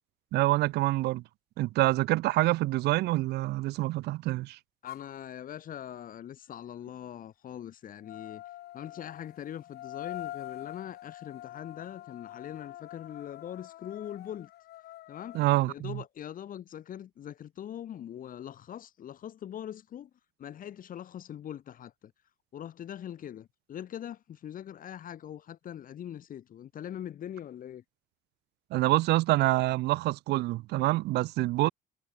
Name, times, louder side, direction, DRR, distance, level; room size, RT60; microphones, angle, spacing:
voice 1, 0.3-1.2 1.6-4.6 15.3-16.0 28.7-31.7, right 18 dB, 80° right, 0.7 m, -26 dB
voice 2, 4.8-8.4 8.7-14.5 15.1-20.1 20.4-22.1 22.5-27.8, left 10 dB, 55° left, 3.6 m, -42 dB
sound 1, 4.9-5.1 8.0-15.5, left 15 dB, 75° left, 3.8 m, -45 dB
cardioid pair, 110°, 17 cm